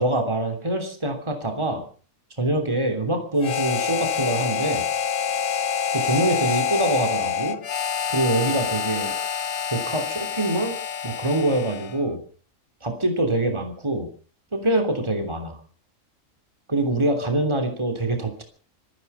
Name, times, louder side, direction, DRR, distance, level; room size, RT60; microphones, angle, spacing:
voice 1, 0.0-1.8 2.4-4.9 5.9-7.6 8.1-9.1 9.7-10.8 11.0-12.2 12.8-14.1 14.5-15.6 16.7-18.4, right 1 dB, 20° right, 5 dB, 3.2 m, -24 dB
Harmonica, 3.4-12.0, left 7 dB, 90° left, 1.5 m, -27 dB
25.0 x 10.5 x 5.7 m, 0.41 s
omnidirectional pair, 1.3 m